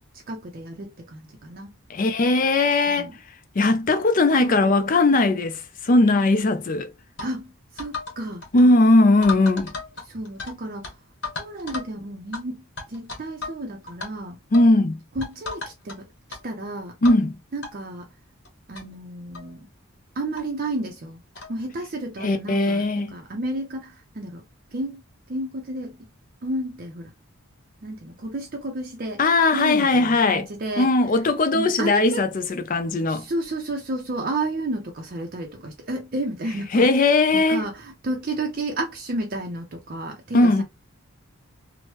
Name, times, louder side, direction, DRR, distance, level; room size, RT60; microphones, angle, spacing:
voice 1, 0.3-1.7 2.9-3.1 4.4-4.7 7.2-8.4 10.0-10.9 11.4-14.4 15.2-16.0 16.4-16.9 17.5-18.1 18.7-19.7 20.2-21.2 21.5-24.4 24.7-25.0 25.3-25.9 26.4-27.1 27.8-29.2 29.5-30.9 31.5-32.2 33.1-36.9 37.3-40.6, right 1 dB, 45° right, 0.5 m, -31 dB
voice 2, 1.9-3.1 3.6-6.9 8.5-9.7 14.5-15.0 17.0-17.4 22.2-23.1 29.2-30.4 30.8-32.4 32.7-33.2 36.7-37.6 40.3-40.6, left 2 dB, 40° left, 0.4 m, -19 dB
sound 1, 7.2-7.3 7.8-8.2 8.4-8.6 9.2-10.5 10.8-10.9 11.2-11.9 12.3-12.4 12.8-13.6 13.9-14.1 14.5-14.7 15.2-16.0 16.3-16.4 17.0-17.2 17.6-17.7 18.4-18.5 18.7-18.8 19.3-19.5 20.4-20.5 21.3-21.5, left 3 dB, 55° left, 1.4 m, -34 dB
3.0 x 2.1 x 3.0 m
head